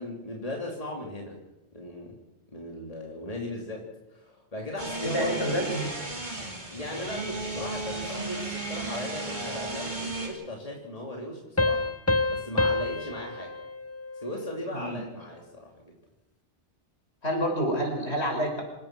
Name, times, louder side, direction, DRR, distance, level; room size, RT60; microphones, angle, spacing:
voice 1, 0.0-1.4 1.7-2.2 2.5-5.3 6.7-11.9 12.3-13.5 14.1-15.9, left 1 dB, 30° left, -1 dB, 3.0 m, -37 dB
sound 1, 4.8-10.3, right 2 dB, 40° right, 3.9 m, -34 dB
voice 2, 5.0-5.9 14.7-15.0 17.2-18.6, equal, 65° left, 2 dB, 5.7 m, -28 dB
sound 2, 11.6-14.9, left 2 dB, 15° left, 0.7 m, -28 dB
26.5 x 17.0 x 6.0 m, 0.98 s
omnidirectional pair, 1.2 m